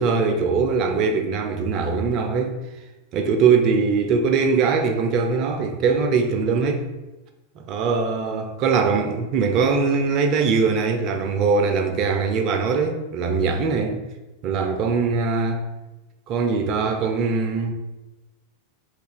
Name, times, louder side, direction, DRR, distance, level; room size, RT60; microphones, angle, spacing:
voice 1, 0.0-2.6 3.1-6.9 7.6-14.0 14.4-15.6 16.3-17.7, right 5 dB, 40° right, 0.4 m, -21 dB
2.3 x 2.3 x 3.5 m
figure-of-eight pair, 90°, 0 cm